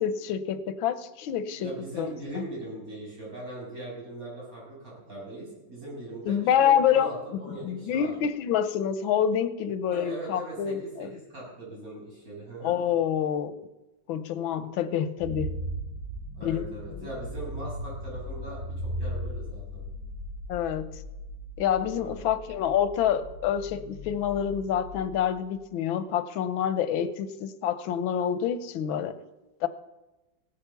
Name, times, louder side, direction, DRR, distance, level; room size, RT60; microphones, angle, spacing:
voice 1, 0.0-2.1 2.3-2.4 6.3-7.1 7.5-11.1 12.6-13.5 14.1-15.5 16.4-17.1 20.5-21.0 21.6-29.1 29.6-29.7, left 9 dB, 90° left, 13 dB, 1.5 m, -27 dB
voice 2, 1.6-8.1 9.9-10.7 11.3-12.8 16.3-19.8 21.9-22.3, right 1 dB, 45° right, -6 dB, 7.5 m, -40 dB
sound 1, 15.2-25.3, equal, 15° right, 5.7 m, -38 dB
17.0 x 9.2 x 7.0 m, 1.0 s
omnidirectional pair, 2.1 m